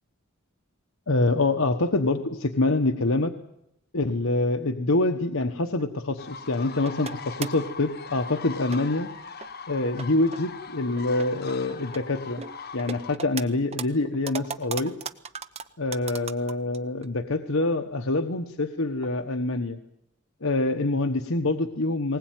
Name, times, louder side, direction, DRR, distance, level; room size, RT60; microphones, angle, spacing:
voice 1, 1.1-3.3 3.9-9.1 9.7-12.4 12.7-14.9 15.8-19.8 20.4-22.2, left 2 dB, 70° left, 5 dB, 1.2 m, -25 dB
sound 1, 5.8-6.3 6.8-7.7 8.2-8.3 8.7-9.1 9.4-9.5 9.9-10.4 11.0-12.0 12.4-13.4 13.7-16.8 17.0-17.1 17.6-17.7 18.0-18.1 19.0-19.1 19.5-19.6, right 5 dB, 30° right, 0.9 m, -37 dB
sound 2, 6.2-13.2, left 5 dB, 45° left, 1.2 m, -41 dB
20.0 x 19.5 x 9.3 m, 0.80 s
head